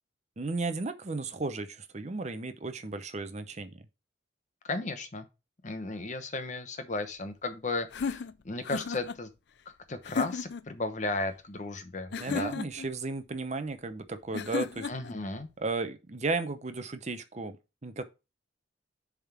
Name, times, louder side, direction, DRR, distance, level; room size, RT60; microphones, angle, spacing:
voice 1, 0.4-3.8 12.2-14.9 15.6-17.6 17.8-18.0, right 3 dB, 35° right, 0.7 m, -34 dB
voice 2, 4.6-5.3 5.6-9.3 9.9-12.6 14.9-15.5, left 2 dB, 40° left, 0.9 m, -35 dB
sound 1, 7.9-9.2 10.0-10.7 12.1-12.9 14.3-15.1, left 5 dB, 60° left, 0.4 m, -34 dB
7.1 x 3.7 x 5.9 m
head